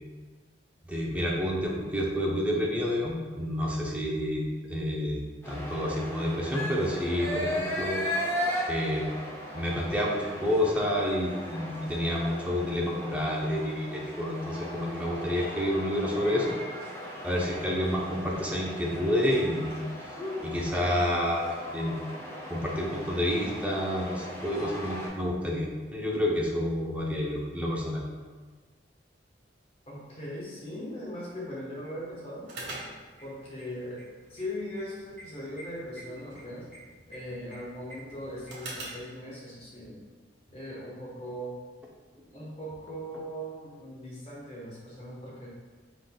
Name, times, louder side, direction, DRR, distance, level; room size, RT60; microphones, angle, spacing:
voice 1, 0.9-5.2 5.5-8.0 8.7-9.1 9.5-16.5 17.2-19.8 20.4-22.0 22.5-28.0, left 1 dB, 10° right, -3 dB, 0.6 m, -29 dB
sound 1, 5.4-25.1, equal, 15° left, 0.9 m, -37 dB
voice 2, 29.9-32.5 33.2-34.0 34.3-36.7 37.1-40.0 40.5-41.5 42.3-45.5, equal, 30° left, -6 dB, 1.2 m, -39 dB
sound 2, 32.4-39.1, right 2 dB, 65° right, 1.5 m, -45 dB
5.0 x 3.9 x 2.2 m, 1.4 s
head